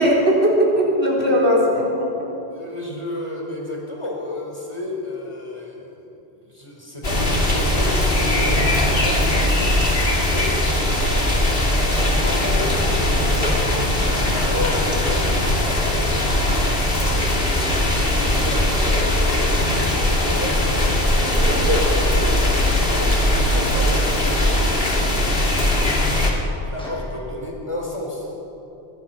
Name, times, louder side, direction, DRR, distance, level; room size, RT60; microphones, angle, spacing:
voice 1, 0.0-2.3 21.3-21.8 22.9-23.1, equal, 85° right, -3 dB, 4.4 m, -19 dB
voice 2, 2.5-6.1 6.5-9.7 10.2-10.7 12.2-15.9 17.9-20.7 21.3-22.0 23.0-25.6 26.6-28.3, left 1 dB, 30° left, -1 dB, 4.9 m, -32 dB
sound 1, 7.0-26.3, left 1 dB, 65° left, 2.8 m, -20 dB
sound 2, 9.7-9.9 10.3-10.4 11.0-11.1 11.6-11.7 12.2-12.3 12.8-12.9 13.4-13.5 14.0-24.5 25.0-25.1 25.6-25.7 26.2-27.2, left 1 dB, 5° left, 5.6 m, -38 dB
24.5 x 21.0 x 5.9 m, 2.9 s
omnidirectional pair, 1.1 m